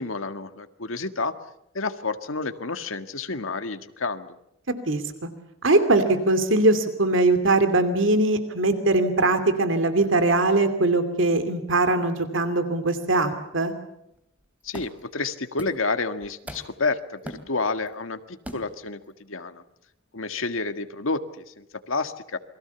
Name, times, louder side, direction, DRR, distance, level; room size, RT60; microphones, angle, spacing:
voice 1, 0.0-1.3 1.7-4.3 14.6-19.6 20.1-22.4, left 3 dB, 75° left, 9 dB, 1.8 m, -30 dB
voice 2, 4.7-5.0 5.6-13.7, right 2 dB, 65° right, 9 dB, 2.7 m, -21 dB
sound 1, 14.2-14.3 14.7-15.1 15.6-15.9 16.2-16.9 17.2-17.9 18.4-18.9, equal, 5° right, 2.8 m, -40 dB
28.5 x 22.5 x 7.1 m, 0.82 s
head